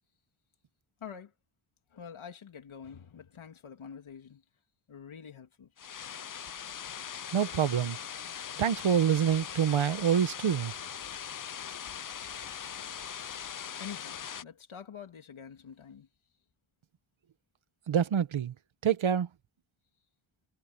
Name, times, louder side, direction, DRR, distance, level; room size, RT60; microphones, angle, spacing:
voice 1, 1.0-1.3 1.9-4.4 4.9-5.7 13.8-16.1, left 7 dB, 75° left, 3.2 m, -46 dB
sound 1, 5.8-14.4, left 8 dB, 40° left, 0.6 m, -41 dB
voice 2, 7.3-8.0 8.6-10.7 17.9-18.5 18.8-19.3, right 8 dB, 70° right, 1.3 m, -26 dB
wide cardioid pair, 120°, 49 cm